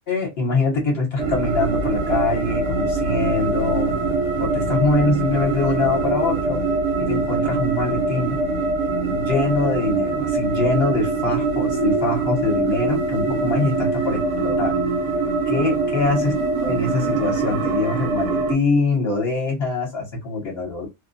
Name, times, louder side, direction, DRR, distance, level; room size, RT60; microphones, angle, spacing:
voice 1, 0.1-3.9 4.4-6.6 7.0-8.4 9.1-14.8 15.5-16.3 16.6-20.9, left 3 dB, 50° left, 1.0 m, -23 dB
sound 1, 1.2-18.5, right 3 dB, 70° right, 0.8 m, -23 dB
2.4 x 2.1 x 2.5 m
omnidirectional pair, 1.4 m